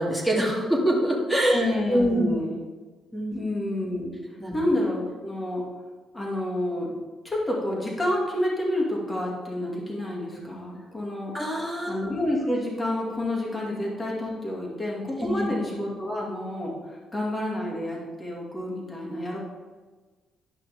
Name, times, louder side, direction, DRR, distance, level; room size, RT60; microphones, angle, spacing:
voice 1, 0.0-2.3 3.1-3.4 4.4-4.6 11.3-12.1 15.2-15.5, right 1 dB, 5° left, -2 dB, 2.4 m, -25 dB
voice 2, 1.5-2.6 3.3-4.2 4.5-5.6 6.1-6.9 7.2-11.3 11.9-19.4, left 1 dB, 25° left, -3 dB, 2.4 m, -29 dB
11.5 x 5.6 x 3.6 m, 1.3 s
cardioid pair, 90°, 0 cm